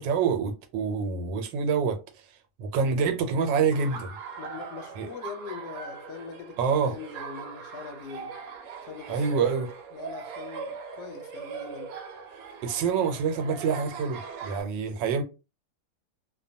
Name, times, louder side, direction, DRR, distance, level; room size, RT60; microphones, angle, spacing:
voice 1, 0.0-2.0 2.6-4.1 5.0-5.1 6.6-7.0 9.1-9.7 12.6-15.2, right 6 dB, 85° right, 1.3 m, -26 dB
Laughter, 3.7-14.6, right 5 dB, 65° right, 1.0 m, -40 dB
voice 2, 4.4-8.4 8.8-9.5 9.9-11.9, left 6 dB, 75° left, 1.1 m, -42 dB
2.8 x 2.2 x 2.6 m
omnidirectional pair, 1.9 m